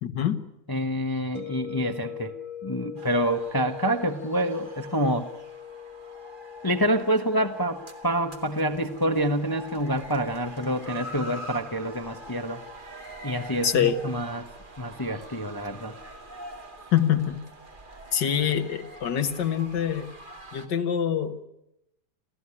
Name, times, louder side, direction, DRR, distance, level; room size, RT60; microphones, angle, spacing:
voice 1, 0.0-0.4 13.6-14.0 16.9-17.4 18.1-20.1 20.5-21.4, left 9 dB, 85° left, 7 dB, 2.1 m, -25 dB
voice 2, 0.7-2.3 2.6-5.3 6.6-12.6 13.2-14.5 14.8-15.9, equal, 15° left, 7 dB, 0.9 m, -27 dB
sound 1, 1.3-16.3, left 9 dB, 45° left, 3.3 m, -45 dB
sound 2, 3.0-20.7, right 1 dB, 30° right, 2.3 m, -44 dB
27.5 x 15.0 x 9.8 m, 0.86 s
omnidirectional pair, 1.8 m